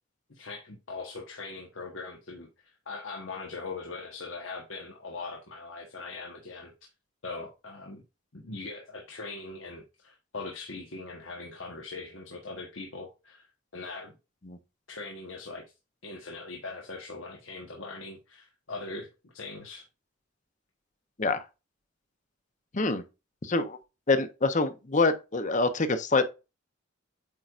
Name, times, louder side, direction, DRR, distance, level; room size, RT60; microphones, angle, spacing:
voice 1, 0.3-2.5 2.9-6.7 7.2-8.0 8.3-13.5 13.7-14.1 14.9-15.6 16.0-19.8, left 3 dB, 80° left, 1.3 m, -41 dB
voice 2, 23.4-23.8 24.1-26.2, left 3 dB, 40° left, 0.8 m, -26 dB
8.4 x 4.7 x 2.5 m
head